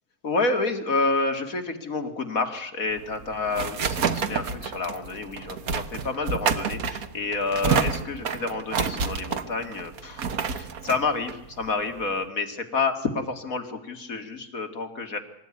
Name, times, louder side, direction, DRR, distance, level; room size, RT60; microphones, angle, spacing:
voice 1, 0.2-15.2, left 3 dB, 65° left, 6 dB, 2.6 m, -29 dB
sound 1, 2.9-12.2, right 6 dB, 75° right, 1.7 m, -29 dB
25.5 x 14.5 x 9.7 m, 0.82 s
omnidirectional pair, 1.6 m